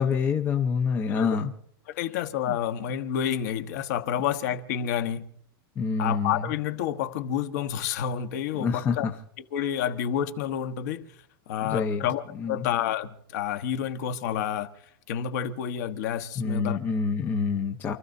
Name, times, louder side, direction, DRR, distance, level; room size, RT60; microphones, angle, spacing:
voice 1, 0.0-1.5 2.5-2.6 5.8-6.5 8.5-9.1 11.6-12.0 12.4-12.6 16.4-17.9, left 5 dB, 15° left, 0.8 m, -27 dB
voice 2, 1.9-5.3 6.0-9.1 9.5-11.1 11.5-14.7 15.1-16.8, left 9 dB, 45° left, 1.3 m, -29 dB
29.0 x 14.0 x 2.7 m
supercardioid pair, 180°, 13 cm